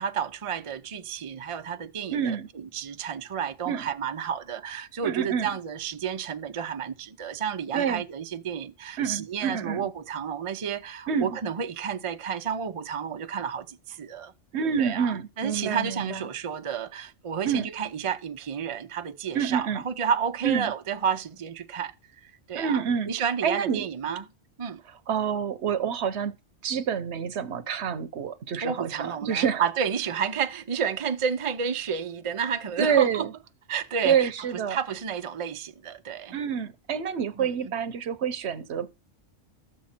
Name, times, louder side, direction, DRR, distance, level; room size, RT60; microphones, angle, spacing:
voice 1, 0.0-14.3 14.8-21.9 22.2-24.3 24.6-24.8 28.6-33.3 33.7-34.3 34.7-36.4 37.4-37.7, right 7 dB, 35° right, 0.5 m, -31 dB
voice 2, 2.1-2.5 3.7-3.8 5.0-5.5 7.7-8.0 9.0-9.9 11.1-11.4 14.5-16.2 17.4-17.7 19.3-19.8 20.4-20.7 22.5-23.1 23.4-23.8 25.1-26.3 26.6-29.6 32.8-33.3 34.0-34.8 36.3-38.9, right 7 dB, 65° right, 1.0 m, -27 dB
12.5 x 7.7 x 4.3 m
omnidirectional pair, 1.3 m